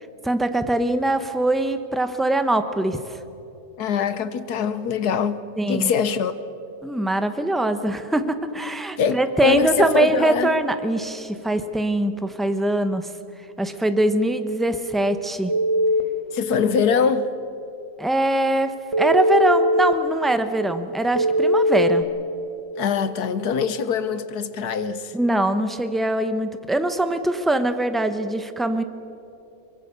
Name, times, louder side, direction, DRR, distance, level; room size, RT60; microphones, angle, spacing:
voice 1, 0.2-3.2 5.6-5.9 6.8-13.1 13.6-15.5 18.0-22.1 25.1-28.8, right 1 dB, ahead, 0.5 m, -22 dB
voice 2, 3.8-5.4 5.7-6.4 9.0-10.5 16.3-17.3 22.8-25.1, left 6 dB, 70° left, 1.4 m, -23 dB
Telephone, 15.5-16.0 18.9-19.9 21.2-22.0, equal, 20° right, 1.9 m, -19 dB
24.0 x 21.0 x 6.9 m
omnidirectional pair, 1.8 m